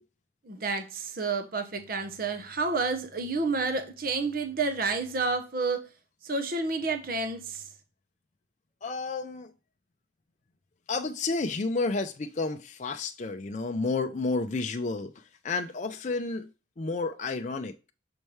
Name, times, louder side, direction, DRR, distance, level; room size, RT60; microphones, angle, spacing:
voice 1, 0.4-5.8 6.2-7.7, right 3 dB, 50° right, 0.8 m, -30 dB
voice 2, 8.8-9.5 10.9-16.5 16.8-17.9, left 3 dB, 40° left, 0.5 m, -31 dB
6.7 x 4.4 x 3.2 m
head